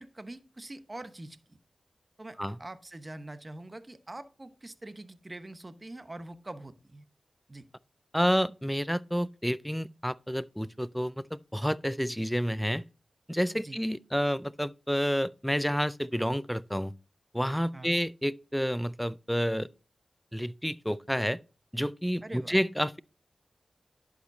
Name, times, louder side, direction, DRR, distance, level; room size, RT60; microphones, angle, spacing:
voice 1, 0.0-1.4 2.2-7.0 7.5-7.6 13.6-13.8 17.7-18.0 22.2-22.6, right 2 dB, 30° right, 0.9 m, -44 dB
voice 2, 8.1-12.8 13.3-16.9 17.3-19.7 20.3-21.4 21.7-23.0, equal, ahead, 0.3 m, -29 dB
11.0 x 5.0 x 2.7 m
cardioid pair, 45°, 0 cm